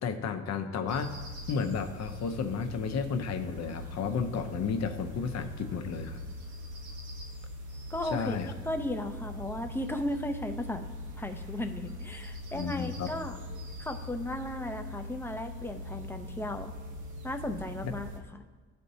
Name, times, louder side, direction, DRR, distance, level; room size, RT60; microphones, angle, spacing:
voice 1, 0.0-1.1 1.5-6.3 8.0-8.5 12.5-13.1 17.8-17.9, left 6 dB, 60° left, 6 dB, 0.7 m, -32 dB
sound 1, 0.9-18.2, left 1 dB, 80° right, 1.1 m, -42 dB
voice 2, 7.9-10.9 11.2-13.4 13.8-16.7 17.2-18.2, left 1 dB, 10° left, 6 dB, 0.6 m, -35 dB
13.0 x 4.4 x 2.7 m, 1.3 s
cardioid pair, 90°, 30 cm